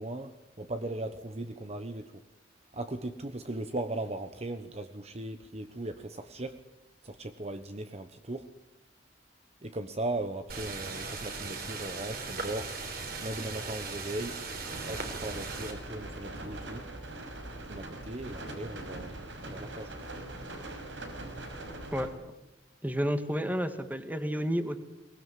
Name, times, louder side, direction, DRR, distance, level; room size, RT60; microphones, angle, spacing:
voice 1, 0.0-2.2 2.7-6.6 7.0-8.5 9.6-12.8 13.2-14.4 14.9-16.8 17.7-19.9, right 2 dB, 35° right, 9 dB, 1.1 m, -38 dB
sound 1, 10.5-15.7, right 3 dB, 55° right, 4.5 m, -38 dB
sound 2, 14.7-22.1, right 1 dB, 80° right, 5.4 m, -42 dB
voice 2, 22.8-24.8, equal, 10° right, 8 dB, 1.9 m, -30 dB
23.0 x 20.0 x 9.3 m, 0.93 s
head